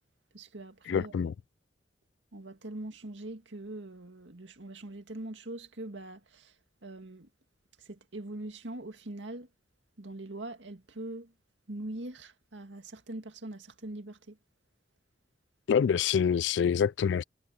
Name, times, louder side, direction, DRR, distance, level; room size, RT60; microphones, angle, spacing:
voice 1, 0.3-1.3 2.3-6.6 6.8-7.3 7.8-9.5 10.0-11.3 11.7-14.4, right 1 dB, 80° right, 2.1 m, -42 dB
voice 2, 0.9-1.3 15.7-17.2, left 7 dB, 75° left, 0.3 m, -26 dB
head